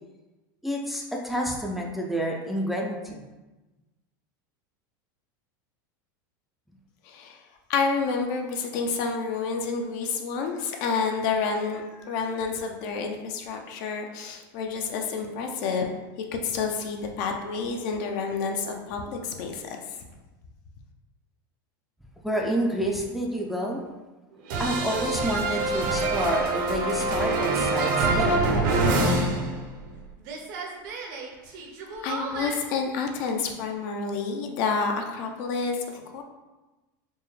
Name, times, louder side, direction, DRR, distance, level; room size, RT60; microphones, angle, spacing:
voice 1, 0.6-3.2 22.2-23.8 24.6-28.5, equal, ahead, -1 dB, 0.4 m, -29 dB
voice 2, 7.0-15.9 16.3-20.1 31.5-31.6 32.0-36.2, left 5 dB, 60° left, 3 dB, 0.6 m, -29 dB
sound 1, 24.5-30.0 30.2-32.6, right 2 dB, 65° right, 0.7 m, -26 dB
4.3 x 2.1 x 3.1 m, 1.1 s
supercardioid pair, 130°, 11 cm